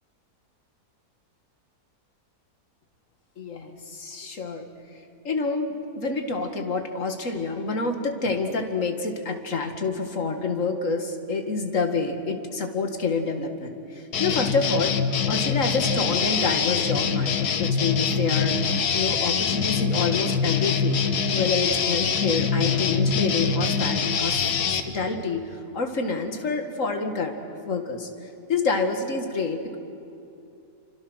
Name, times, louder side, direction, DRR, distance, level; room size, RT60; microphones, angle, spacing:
voice 1, 3.4-4.7 5.2-14.9 15.3-21.0 21.3-27.3 27.6-29.8, left 4 dB, 55° left, 5 dB, 2.2 m, -28 dB
sound 1, 14.1-24.8, left 6 dB, 80° left, 1.6 m, -24 dB
28.5 x 25.0 x 6.4 m, 2.7 s
omnidirectional pair, 1.7 m